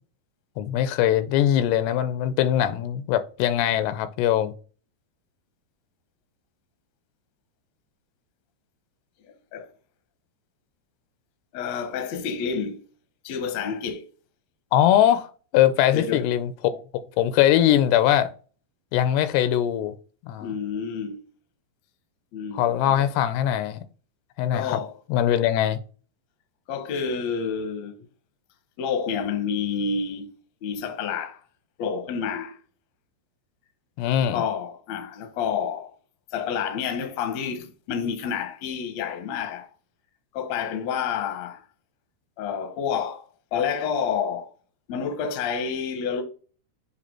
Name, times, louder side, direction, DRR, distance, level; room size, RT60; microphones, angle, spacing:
voice 1, 0.6-4.5 14.7-15.3 15.5-16.8 17.2-18.3 18.9-19.9 20.3-20.5 22.6-23.8 24.4-24.8 25.1-25.8 34.0-34.4, left 11 dB, 85° left, 2.7 m, -21 dB
voice 2, 9.2-9.7 11.5-12.8 13.2-14.0 15.9-16.3 20.4-21.2 22.3-23.1 24.5-25.0 26.7-28.0 28.8-30.3 30.6-31.4 31.8-32.6 34.2-35.9 36.3-39.7 40.3-41.6 42.4-44.5 44.9-46.2, left 6 dB, 65° left, 1.7 m, -29 dB
7.7 x 3.4 x 4.3 m
omnidirectional pair, 4.7 m